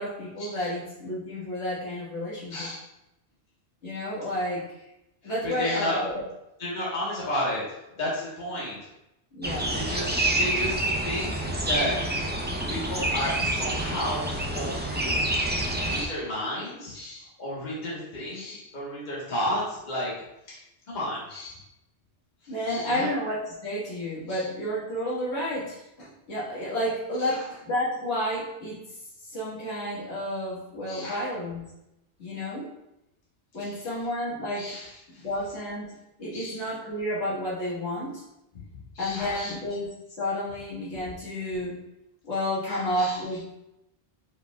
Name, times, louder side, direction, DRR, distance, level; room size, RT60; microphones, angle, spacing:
voice 1, 0.0-2.7 3.8-4.9 5.2-6.2 9.3-9.7 22.5-28.8 29.2-31.7 32.2-32.7 33.5-34.7 35.2-35.9 36.2-38.2 39.0-41.8 42.2-43.5, left 1 dB, 80° left, -7 dB, 1.8 m, -31 dB
voice 2, 5.4-6.0 6.6-8.9 9.5-12.4 12.7-15.2 15.8-20.1 20.5-20.6 20.9-21.6 22.7-23.1 24.3-24.5 27.2-27.4 30.9-31.2 33.6-33.8 34.5-35.3 36.3-36.6 38.9-39.5 42.6-43.2, left 1 dB, 45° left, -6 dB, 1.4 m, -33 dB
sound 1, 9.4-16.1, right 1 dB, 15° right, 0.3 m, -28 dB
5.0 x 4.7 x 2.3 m, 0.87 s
omnidirectional pair, 1.1 m